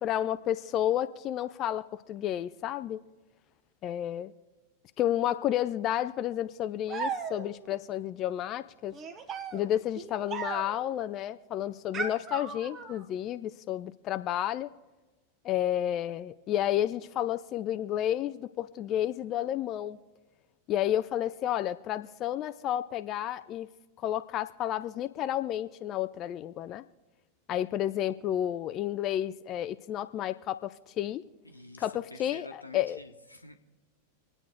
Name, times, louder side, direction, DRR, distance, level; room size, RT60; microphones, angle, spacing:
voice 1, 0.0-3.0 3.8-4.3 5.0-8.9 9.5-14.7 15.4-20.0 20.7-23.7 24.0-26.8 27.5-31.2 31.8-33.0, left 11 dB, 35° left, 10 dB, 0.4 m, -31 dB
sound 1, 6.9-7.7 8.9-10.9 11.9-13.0, right 5 dB, 25° right, 1.2 m, -37 dB
voice 2, 31.4-33.7, left 2 dB, 85° left, 6 dB, 1.2 m, -48 dB
26.5 x 9.0 x 3.6 m, 1.2 s
figure-of-eight pair, 90°, 0 cm